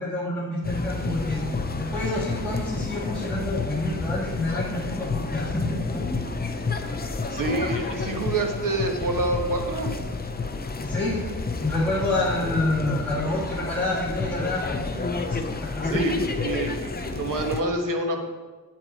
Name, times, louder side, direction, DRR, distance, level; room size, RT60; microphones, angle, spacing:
voice 1, 0.0-6.0 10.8-11.3 11.6-15.0 15.3-16.0 17.0-17.2, left 1 dB, 5° left, -9 dB, 1.8 m, -28 dB
sound 1, 0.6-17.6, left 3 dB, 25° left, 0.6 m, -30 dB
voice 2, 7.3-9.9 15.8-18.2, right 2 dB, 65° right, 3 dB, 1.4 m, -27 dB
8.8 x 8.4 x 4.2 m, 1.3 s
wide cardioid pair, 130°, 35 cm